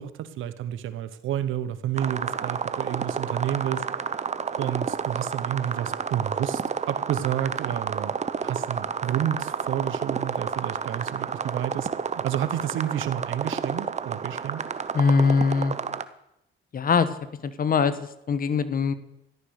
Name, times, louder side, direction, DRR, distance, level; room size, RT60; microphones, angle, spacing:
voice 1, 0.0-3.8 4.6-8.1 8.4-14.6, right 10 dB, 85° right, 13 dB, 1.1 m, -30 dB
sound 1, 2.0-16.0, right 6 dB, 35° right, 0.9 m, -30 dB
voice 2, 14.9-15.8 16.7-17.1 17.4-18.9, left 5 dB, 45° left, 14 dB, 1.2 m, -22 dB
14.0 x 11.5 x 6.5 m, 0.84 s
cardioid pair, 90°, 20 cm